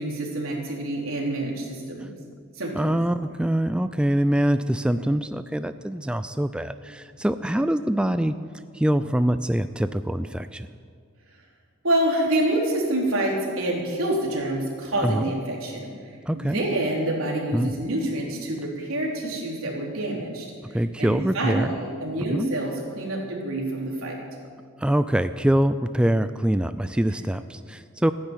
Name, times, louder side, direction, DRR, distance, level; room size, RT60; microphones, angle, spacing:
voice 1, 0.0-2.1 2.6-2.9 11.8-15.9 16.3-24.2 27.0-27.1, right 1 dB, 80° right, -2 dB, 3.6 m, -27 dB
voice 2, 2.8-8.4 8.7-10.7 15.0-15.2 16.3-16.6 17.5-17.7 20.7-21.7 22.3-22.5 24.8-28.1, right 1 dB, 5° right, 11 dB, 0.3 m, -24 dB
14.5 x 10.5 x 9.1 m, 2.1 s
head